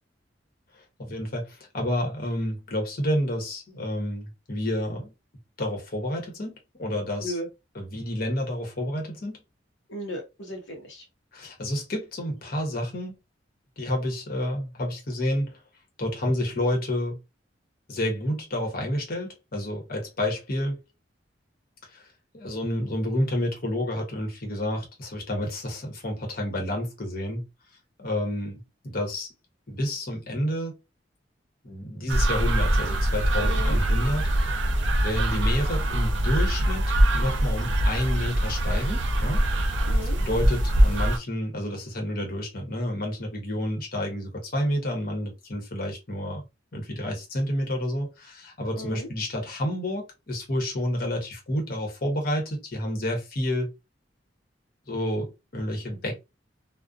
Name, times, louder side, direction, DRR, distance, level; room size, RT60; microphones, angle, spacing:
voice 1, 0.7-5.1 5.6-7.4 7.7-9.4 11.3-13.2 13.8-15.6 16.0-17.2 17.9-20.8 21.8-22.1 22.3-27.4 28.0-29.3 29.7-30.8 31.6-34.3 35.0-39.4 40.0-46.4 46.7-53.7 54.9-56.1, left 1 dB, 50° left, 0.9 m, -29 dB
voice 2, 9.9-11.0 33.4-33.8 39.9-40.2 48.7-49.1, left 1 dB, 75° left, 0.6 m, -35 dB
sound 1, 32.1-41.2, right 1 dB, 75° right, 0.6 m, -23 dB
2.5 x 2.1 x 2.4 m
head